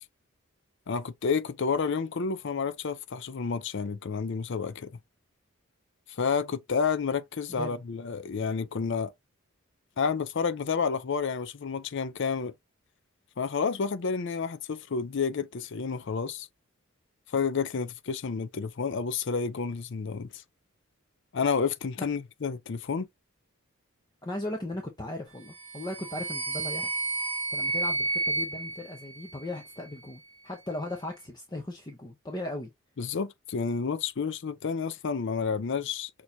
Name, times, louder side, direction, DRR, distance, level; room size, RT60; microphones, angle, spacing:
voice 1, 0.9-4.9 6.1-9.1 10.0-12.5 13.4-16.5 17.3-20.4 21.3-23.1 33.0-36.1, left 5 dB, 60° left, 0.5 m, -30 dB
voice 2, 7.5-7.8 22.0-22.1 24.2-27.0 27.5-32.7, left 1 dB, 20° left, 0.7 m, -37 dB
sound 1, 25.5-29.8, right 2 dB, 30° right, 1.0 m, -32 dB
6.2 x 2.9 x 2.6 m
head